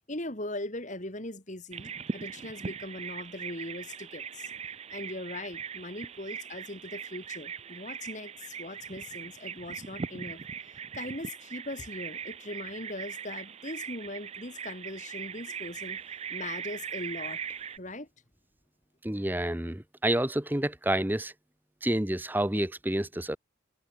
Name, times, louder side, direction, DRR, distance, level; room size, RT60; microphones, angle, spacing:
voice 1, 0.0-4.5 4.9-10.4 10.7-17.4 17.8-18.1, left 1 dB, 35° left, 3.3 m, -40 dB
Bird vocalization bird call bird song, 1.7-17.8, right 7 dB, 30° right, 0.4 m, -40 dB
voice 2, 19.0-21.3 21.8-23.4, right 1 dB, 10° right, 0.8 m, -29 dB
head